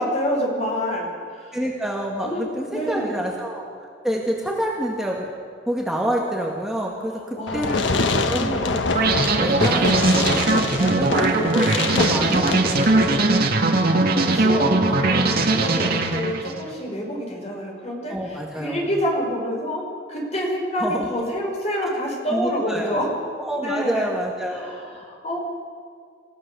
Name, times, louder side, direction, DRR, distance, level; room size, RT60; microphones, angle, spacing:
voice 1, 0.0-1.6 2.2-3.2 7.3-7.8 8.3-8.7 13.6-19.8 20.1-23.1 23.5-24.1 24.5-25.4, equal, 35° left, 0 dB, 5.7 m, -27 dB
voice 2, 1.5-3.7 4.0-5.3 5.7-8.8 9.4-13.4 18.1-18.9 20.8-21.3 21.8-21.9 22.3-23.0 23.4-24.9, equal, 5° right, -2 dB, 2.0 m, -28 dB
Fireworks, 7.5-13.5, left 3 dB, 90° left, 1.2 m, -25 dB
sound 1, 8.9-16.6, right 2 dB, 55° right, 1.9 m, -20 dB
27.5 x 16.0 x 7.0 m, 2.1 s
head